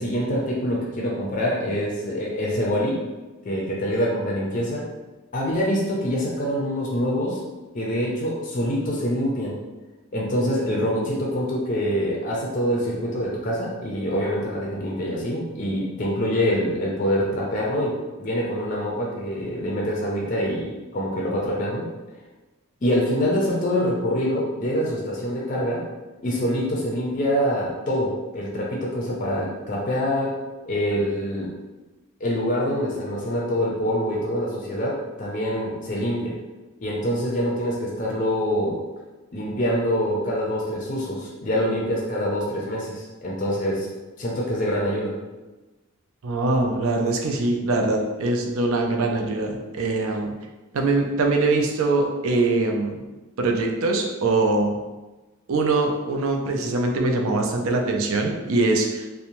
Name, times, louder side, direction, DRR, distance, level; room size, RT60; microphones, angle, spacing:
voice 1, 0.0-3.0 3.4-4.8 5.3-7.4 7.7-9.6 10.1-21.9 22.8-25.8 26.2-30.4 30.7-31.5 32.2-36.3 36.8-38.8 39.3-43.9 44.2-45.1, equal, 35° left, -3 dB, 0.4 m, -25 dB
voice 2, 46.2-50.3 50.7-53.0 53.4-54.8 55.5-59.1, right 2 dB, 70° right, 2 dB, 0.4 m, -23 dB
2.6 x 2.1 x 2.9 m, 1.1 s
head